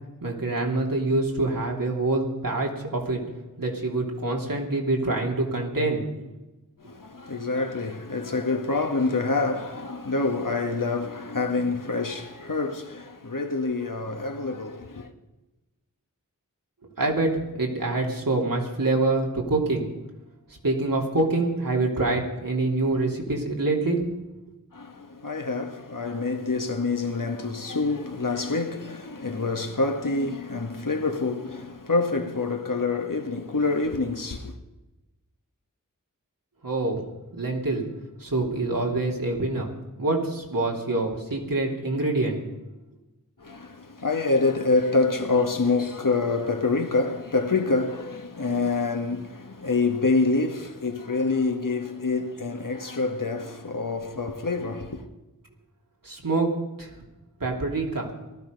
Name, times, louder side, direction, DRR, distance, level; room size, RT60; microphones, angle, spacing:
voice 1, 0.2-3.2 3.6-6.1 17.0-19.9 20.5-24.0 36.6-37.0 37.3-37.9 38.2-39.7 40.0-42.4 56.0-56.5 56.8-56.9 57.4-58.1, right 2 dB, 85° right, 3.2 m, -25 dB
voice 2, 6.8-15.1 24.7-34.5 43.4-55.1, left 3 dB, 70° left, 1.7 m, -26 dB
19.0 x 13.5 x 5.4 m
wide cardioid pair, 60°, 33 cm